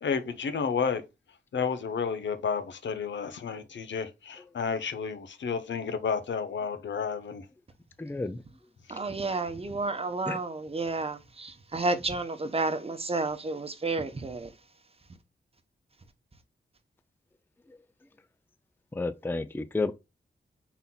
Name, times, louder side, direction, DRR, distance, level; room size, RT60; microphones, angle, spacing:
voice 1, 0.0-1.0 1.5-7.5, left 6 dB, 85° left, 0.8 m, -31 dB
voice 2, 8.0-8.4 8.9-9.0 10.3-10.4 17.7-17.8 18.9-19.9, left 3 dB, 10° left, 0.4 m, -31 dB
voice 3, 8.9-14.5, right 3 dB, 30° right, 0.8 m, -31 dB
5.6 x 4.1 x 2.3 m
wide cardioid pair, 100°, 19 cm